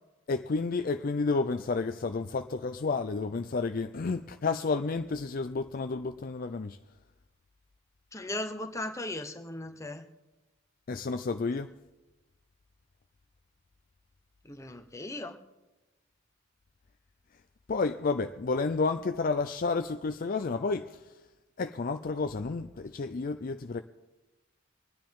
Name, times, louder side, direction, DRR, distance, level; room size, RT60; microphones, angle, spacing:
voice 1, 0.3-6.8 10.9-11.7 17.7-21.2 21.6-23.8, left 4 dB, 45° left, 0.4 m, -31 dB
voice 2, 8.1-10.0 14.4-15.4, left 1 dB, 15° left, 1.0 m, -37 dB
25.5 x 10.0 x 3.6 m
head